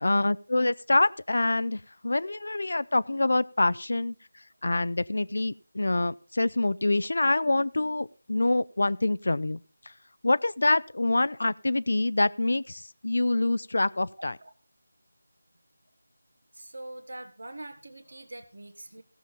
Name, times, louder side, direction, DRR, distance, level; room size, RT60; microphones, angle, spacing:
voice 1, 0.0-4.1 4.6-9.6 10.2-14.4, left 2 dB, 65° left, 0.5 m, -26 dB
voice 2, 16.5-19.0, right 1 dB, 70° right, 1.3 m, -43 dB
16.5 x 7.1 x 4.1 m
figure-of-eight pair, 165°, 0 cm